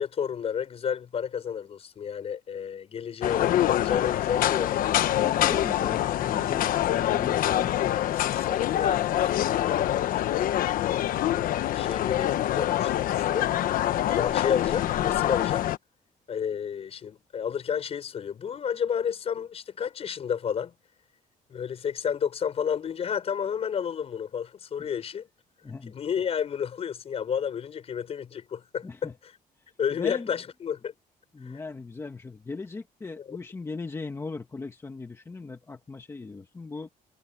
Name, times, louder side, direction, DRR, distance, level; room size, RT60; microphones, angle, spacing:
voice 1, 0.0-4.7 5.8-6.0 7.5-7.6 8.0-10.6 11.3-13.5 14.1-15.6 16.3-20.7 21.5-25.3 25.9-28.9 29.8-30.9 31.4-31.5 33.3-33.4, left 8 dB, 40° left, 5.7 m, -31 dB
sound 1, 3.2-15.8, left 12 dB, 65° left, 1.0 m, -25 dB
voice 2, 5.2-8.2 24.8-24.9 25.6-25.9 28.8-29.2 29.6-30.3 31.3-36.9, left 3 dB, 20° left, 1.9 m, -39 dB
cardioid pair, 160°, 15 cm